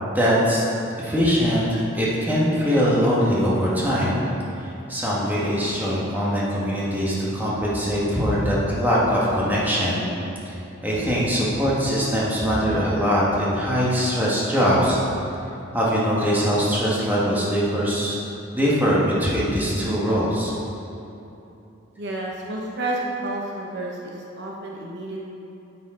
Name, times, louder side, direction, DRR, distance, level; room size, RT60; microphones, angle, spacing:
voice 1, 0.1-0.6 1.0-4.2 4.9-10.0 10.4-10.5 10.8-15.0 15.7-18.2 18.5-20.5, equal, 10° right, -7 dB, 1.5 m, -22 dB
voice 2, 22.0-25.2, right 2 dB, 55° right, -2 dB, 0.9 m, -30 dB
9.3 x 7.1 x 3.8 m, 2.9 s
head